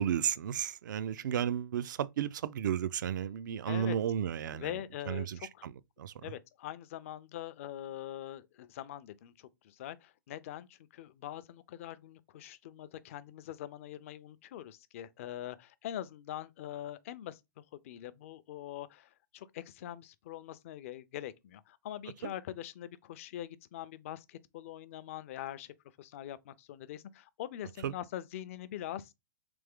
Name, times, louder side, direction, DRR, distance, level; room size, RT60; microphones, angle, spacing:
voice 1, 0.0-4.7 5.1-5.7 6.0-6.1 22.2-22.3 27.8-27.9, right 9 dB, 65° right, 0.4 m, -33 dB
voice 2, 3.7-4.0 4.5-5.7 6.2-29.1, left 12 dB, 40° left, 0.4 m, -43 dB
3.4 x 3.2 x 3.5 m
hypercardioid pair, 155°, 11 cm